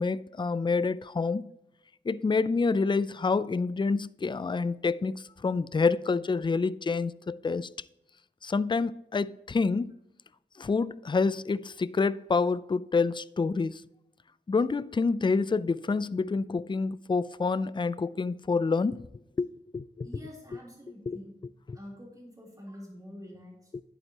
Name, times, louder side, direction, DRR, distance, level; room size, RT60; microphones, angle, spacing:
voice 1, 0.0-1.5 2.1-7.7 8.4-9.9 10.6-13.8 14.5-19.0 19.4-20.6 21.1-21.2 21.7-21.8 23.7-23.8, left 4 dB, 25° left, 0.3 m, -28 dB
voice 2, 20.0-21.3 21.7-23.7, equal, 20° right, 3.4 m, -46 dB
11.0 x 8.8 x 2.9 m
cardioid pair, 45°, 20 cm